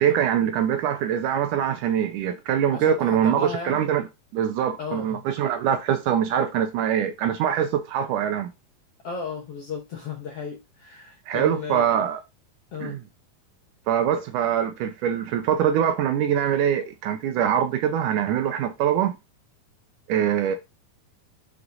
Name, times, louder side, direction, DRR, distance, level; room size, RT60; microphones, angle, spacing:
voice 1, 0.0-4.0 4.3-8.5 11.3-12.2 12.8-13.0 13.9-19.2 20.1-20.6, right 9 dB, 75° right, 2.0 m, -23 dB
voice 2, 2.7-3.8 4.8-5.2 9.0-11.9 12.7-13.0, left 5 dB, 70° left, 1.5 m, -34 dB
6.1 x 4.7 x 4.0 m
omnidirectional pair, 4.1 m